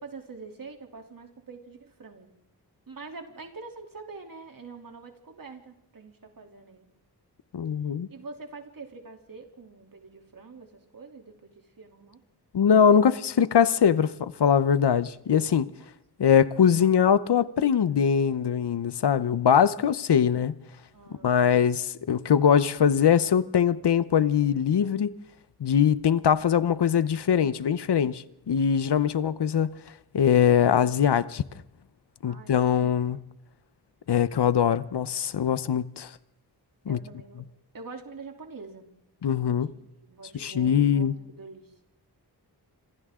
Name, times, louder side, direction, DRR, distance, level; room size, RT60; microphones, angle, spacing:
voice 1, 0.0-2.3 2.9-6.9 8.1-12.2 15.7-15.9 16.8-16.9 20.9-21.6 32.2-32.9 36.8-37.4 37.7-38.9 39.5-41.8, right 4 dB, 55° right, 3.2 m, -45 dB
voice 2, 7.5-8.1 12.5-15.7 16.2-20.5 21.2-25.1 25.6-29.8 30.1-31.4 32.2-33.2 34.1-36.1 36.9-37.0 39.2-39.7 40.3-41.1, left 8 dB, 85° left, 0.9 m, -22 dB
27.0 x 26.0 x 3.8 m
wide cardioid pair, 80°, 39 cm